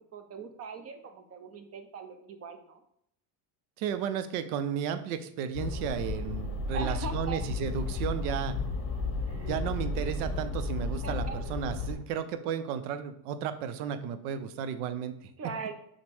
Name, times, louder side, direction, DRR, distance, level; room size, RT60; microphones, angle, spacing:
voice 1, 0.0-2.8 6.7-7.4 9.2-9.6 11.0-11.4 15.4-15.7, right 5 dB, 35° right, 6 dB, 0.6 m, -40 dB
voice 2, 3.8-8.5 9.5-11.2 11.5-15.3, right 8 dB, 80° right, 11 dB, 0.6 m, -33 dB
sound 1, 5.5-12.0, left 3 dB, 30° left, 0.8 m, -33 dB
5.9 x 2.2 x 3.4 m, 0.72 s
supercardioid pair, 115°, 44 cm